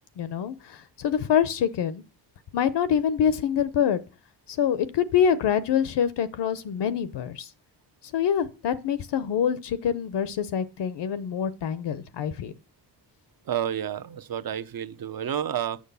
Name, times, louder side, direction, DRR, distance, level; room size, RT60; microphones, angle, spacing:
voice 1, 0.2-2.0 2.5-4.0 4.5-7.5 8.1-12.5, left 8 dB, 70° left, 0.9 m, -25 dB
voice 2, 13.5-15.8, right 10 dB, 55° right, 0.9 m, -30 dB
9.8 x 6.4 x 6.9 m
cardioid pair, 100°, 42 cm